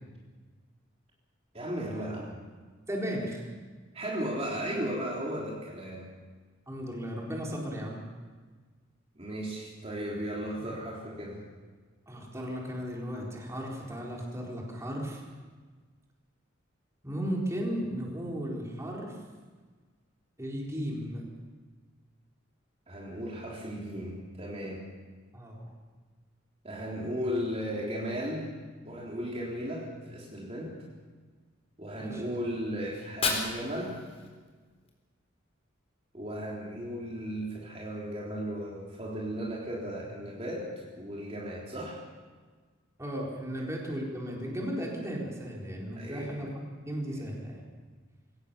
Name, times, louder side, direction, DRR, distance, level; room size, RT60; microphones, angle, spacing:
voice 1, 1.5-2.4 3.9-6.1 9.2-11.4 22.9-24.9 26.6-28.5 28.9-30.8 31.8-34.0 36.1-42.0 43.6-43.7 46.0-46.3 47.1-47.3, equal, 30° right, -4 dB, 3.7 m, -35 dB
voice 2, 2.9-3.4 6.7-8.0 10.6-10.7 12.1-15.2 17.0-19.2 20.4-21.2 25.3-25.7 32.0-32.2 43.0-47.6, equal, 15° right, -2 dB, 4.2 m, -35 dB
Fire, 32.9-34.9, left 4 dB, 30° left, 4.0 m, -34 dB
23.0 x 18.0 x 6.9 m, 1.4 s
head